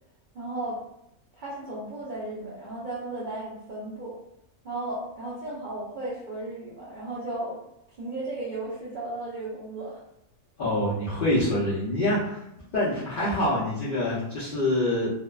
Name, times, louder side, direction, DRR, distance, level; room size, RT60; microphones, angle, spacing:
voice 1, 0.3-0.8 1.3-4.2 4.6-7.6 8.0-10.0, right 2 dB, 75° right, -7 dB, 0.4 m, -35 dB
voice 2, 10.6-12.4 12.7-15.1, left 1 dB, 60° left, -10 dB, 0.5 m, -25 dB
2.6 x 2.1 x 2.3 m, 0.80 s
omnidirectional pair, 1.5 m